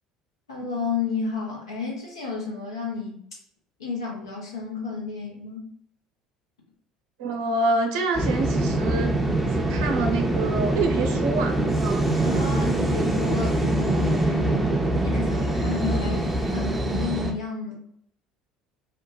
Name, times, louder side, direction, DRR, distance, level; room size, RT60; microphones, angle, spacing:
voice 1, 0.5-3.2 3.8-5.7 12.2-14.7 15.0-17.8, left 4 dB, 80° left, -2 dB, 0.6 m, -31 dB
voice 2, 7.2-9.1 9.5-12.9, right 3 dB, 65° right, 3 dB, 0.5 m, -27 dB
sound 1, 8.1-17.3, right 1 dB, 10° right, 0.6 m, -24 dB
2.7 x 2.2 x 2.8 m, 0.66 s
figure-of-eight pair, 60°, 2 cm